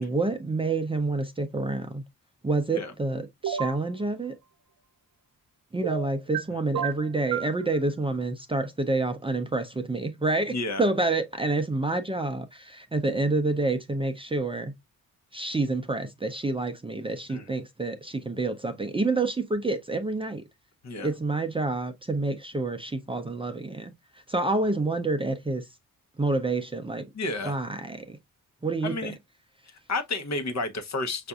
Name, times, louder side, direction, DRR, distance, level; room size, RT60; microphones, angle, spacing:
voice 1, 0.0-2.0 2.4-4.4 5.7-14.7 15.3-20.4 21.0-23.9 24.3-25.7 26.2-27.1 27.4-28.2 28.6-29.1, right 2 dB, 15° right, 0.5 m, -28 dB
sound 1, 3.4-3.8 5.8-6.4 6.7-7.5, right 9 dB, 85° right, 0.7 m, -30 dB
voice 2, 10.5-10.8 17.3-17.5 20.8-21.1 27.1-27.6 28.8-29.1 29.7-31.3, left 2 dB, 55° left, 0.9 m, -31 dB
5.7 x 2.5 x 2.3 m
cardioid pair, 90°, 34 cm